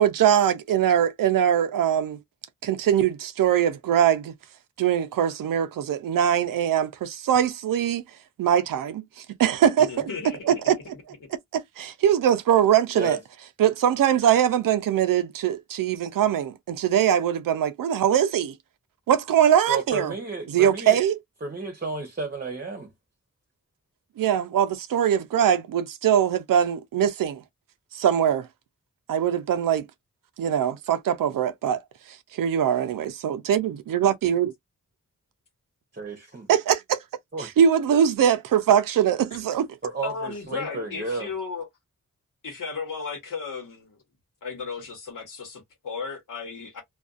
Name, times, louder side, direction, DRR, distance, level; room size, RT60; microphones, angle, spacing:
voice 1, 0.0-2.2 2.6-4.3 4.8-8.0 8.4-10.1 10.4-10.8 11.5-13.2 13.6-18.5 19.1-20.1 20.5-21.2 24.2-27.4 27.9-28.5 29.1-29.9 30.4-31.8 32.3-34.5 36.5-37.0 37.4-39.7, right 9 dB, 85° right, 0.5 m, -22 dB
voice 2, 9.8-10.6 39.3-39.4 40.0-41.7 42.4-44.0 44.4-46.8, left 5 dB, 75° left, 1.1 m, -35 dB
voice 3, 19.7-21.0 21.4-22.9 35.9-36.5 37.3-37.5 39.8-41.3, right 2 dB, 30° right, 0.8 m, -32 dB
2.5 x 2.3 x 2.3 m
cardioid pair, 55°, 32 cm